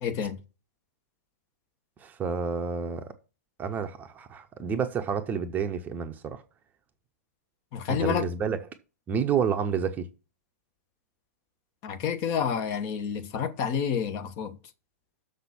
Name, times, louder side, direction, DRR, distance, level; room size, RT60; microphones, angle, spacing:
voice 1, 0.0-0.4 7.7-8.3 11.8-14.5, left 7 dB, 35° left, 1.2 m, -29 dB
voice 2, 2.0-3.1 3.6-6.4 7.9-8.6 9.1-10.0, right 6 dB, 20° right, 0.8 m, -29 dB
6.8 x 5.8 x 7.1 m
figure-of-eight pair, 105°, 8 cm